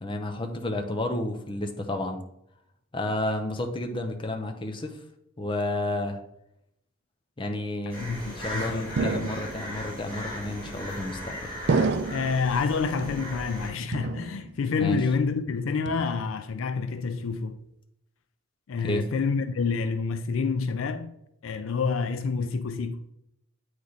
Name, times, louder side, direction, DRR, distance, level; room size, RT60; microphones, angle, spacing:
voice 1, 0.0-2.2 2.9-5.0 5.4-6.2 7.4-8.0 8.4-11.5 14.8-15.0 18.8-19.0, left 1 dB, 25° left, 0.6 m, -31 dB
sound 1, 7.9-13.7, left 1 dB, 10° left, 2.2 m, -38 dB
voice 2, 8.0-8.9 12.1-17.6 18.7-21.1 21.4-23.0, left 5 dB, 65° left, 0.4 m, -28 dB
sound 2, 9.0-9.8 10.7-11.2 11.7-12.5 13.0-13.6 13.9-14.7 15.0-15.4 15.9-16.5, right 4 dB, 55° right, 0.4 m, -30 dB
8.2 x 3.2 x 4.0 m
head